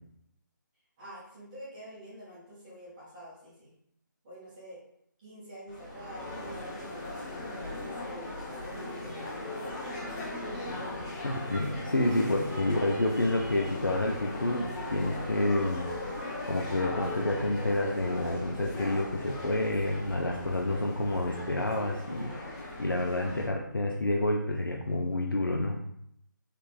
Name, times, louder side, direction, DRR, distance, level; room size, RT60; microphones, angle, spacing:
voice 1, 1.0-3.7 4.2-4.8 5.2-10.1, right 1 dB, 20° right, -10 dB, 1.4 m, -47 dB
sound 1, 5.7-23.5, left 2 dB, 20° left, 0.9 m, -38 dB
voice 2, 11.2-15.9 16.5-25.8, left 1 dB, 85° left, 1 dB, 0.5 m, -29 dB
4.1 x 3.2 x 3.4 m, 0.72 s
figure-of-eight pair, 150°, 11 cm